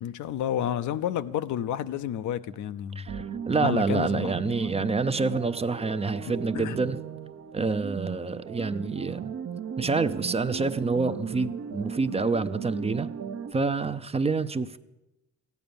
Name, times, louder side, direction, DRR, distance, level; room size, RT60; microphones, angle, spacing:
voice 1, 0.0-3.1 3.6-4.3 4.6-4.7 6.5-6.8, left 10 dB, 80° left, 12 dB, 0.6 m, -30 dB
voice 2, 3.0-7.0 7.5-9.3 9.8-13.1 13.5-14.8, right 4 dB, 20° right, 11 dB, 0.5 m, -27 dB
sound 1, 3.1-13.5, right 7 dB, 50° right, 0.8 m, -36 dB
15.0 x 9.3 x 6.9 m, 0.97 s
cardioid pair, 90°, 30 cm